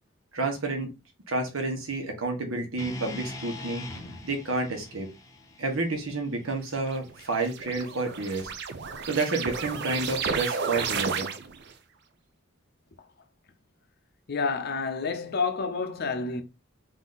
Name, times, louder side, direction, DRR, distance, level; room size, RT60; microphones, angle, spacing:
voice 1, 0.3-0.9 1.3-3.9 4.2-5.1 5.6-8.5 9.1-11.3, right 3 dB, 90° right, 1.3 m, -30 dB
sound 1, 2.8-7.0, left 2 dB, 15° left, 0.7 m, -42 dB
sound 2, 6.8-11.7, right 5 dB, 55° right, 0.5 m, -32 dB
voice 2, 14.3-16.4, left 4 dB, 50° left, 0.6 m, -29 dB
3.9 x 2.7 x 4.0 m
head